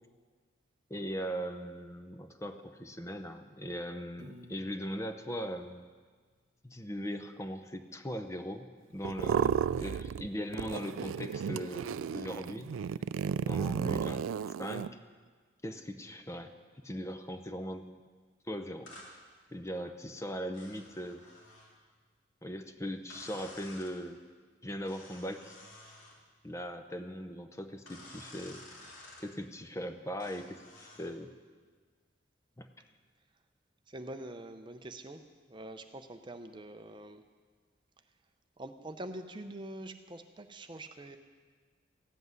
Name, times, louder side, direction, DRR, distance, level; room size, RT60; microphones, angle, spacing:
voice 1, 0.9-5.8 6.6-12.7 13.5-14.3 14.6-14.9 15.6-17.8 18.4-19.2 19.5-21.3 22.4-24.2 24.6-25.6 26.4-28.9 29.2-31.3 32.6-32.7, equal, 15° left, 8 dB, 0.6 m, -40 dB
Piano, 4.2-6.4, left 1 dB, 55° right, 1.2 m, -58 dB
sound 1, 9.0-10.3 10.5-14.9, right 7 dB, 85° right, 0.3 m, -33 dB
sound 2, 18.9-19.1 20.5-21.7 23.1-24.0 24.8-26.2 27.9-29.3 30.2-31.1, left 2 dB, 80° left, 2.8 m, -52 dB
voice 2, 33.9-35.2 35.5-37.2 38.6-41.2, right 1 dB, 25° right, 7 dB, 0.6 m, -44 dB
14.5 x 7.9 x 9.5 m, 1.5 s
head